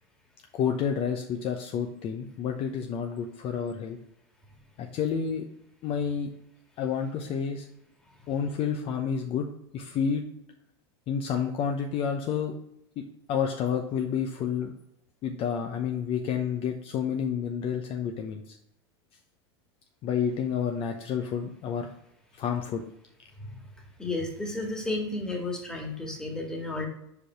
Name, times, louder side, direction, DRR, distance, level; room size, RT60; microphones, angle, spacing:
voice 1, 0.5-4.0 4.8-5.4 5.8-6.3 6.8-7.7 8.3-9.5 9.7-10.2 11.1-12.6 13.0-13.1 13.3-14.7 15.2-18.6 20.0-21.9 22.4-22.8, left 7 dB, 45° left, 3 dB, 0.8 m, -29 dB
voice 2, 24.0-26.9, left 2 dB, 5° left, 0 dB, 1.8 m, -32 dB
5.2 x 4.8 x 4.4 m, 0.80 s
hypercardioid pair, 100°, 14 cm